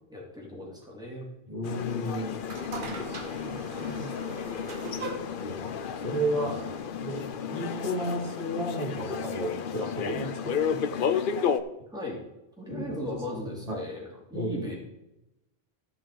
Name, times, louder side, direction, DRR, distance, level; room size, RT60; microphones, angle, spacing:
voice 1, 0.1-1.2 6.4-6.7 11.9-12.2 12.6-14.7, left 1 dB, 5° right, -4 dB, 3.3 m, -37 dB
voice 2, 1.5-2.3 2.8-3.2 3.4-4.2 5.4-6.5 6.9-7.2 7.5-10.9 12.7-13.9 14.3-14.6, equal, 35° right, -2 dB, 2.8 m, -33 dB
sound 1, 1.6-11.6, left 7 dB, 55° left, 0.8 m, -32 dB
sound 2, 2.0-7.3, right 3 dB, 55° right, 1.3 m, -42 dB
14.0 x 5.8 x 5.0 m, 0.93 s
omnidirectional pair, 1.1 m